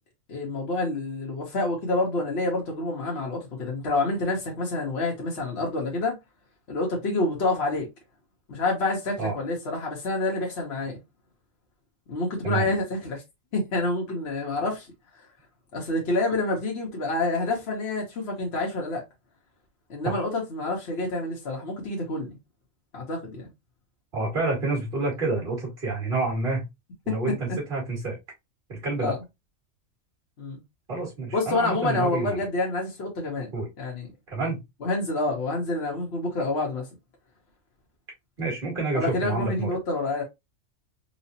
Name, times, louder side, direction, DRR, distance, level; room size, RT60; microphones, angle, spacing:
voice 1, 0.3-6.1 6.7-7.9 8.5-11.0 12.1-13.2 13.5-14.9 15.7-19.0 19.9-22.4 22.9-23.5 27.1-27.2 29.0-29.2 30.4-30.6 31.3-33.5 33.8-34.1 34.8-36.9 38.9-40.2, left 2 dB, 55° left, 1.2 m, -28 dB
voice 2, 24.1-26.7 27.1-28.2 28.7-29.1 30.9-32.4 33.5-33.7 34.3-34.6 38.4-39.7, right 3 dB, 45° right, 2.1 m, -28 dB
4.1 x 2.5 x 2.7 m
omnidirectional pair, 1.3 m